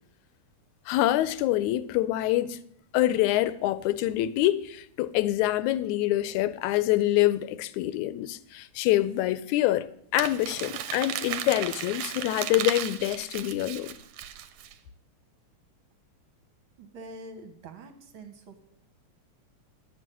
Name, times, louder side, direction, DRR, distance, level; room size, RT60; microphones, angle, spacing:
voice 1, 0.9-2.6 2.9-9.9 10.1-13.9, left 15 dB, 80° left, 2.0 m, -26 dB
Crumpling crinkling, 10.2-14.7, right 11 dB, 75° right, 1.8 m, -35 dB
voice 2, 16.8-18.6, right 2 dB, 55° right, 1.7 m, -45 dB
11.0 x 6.2 x 9.2 m
omnidirectional pair, 3.4 m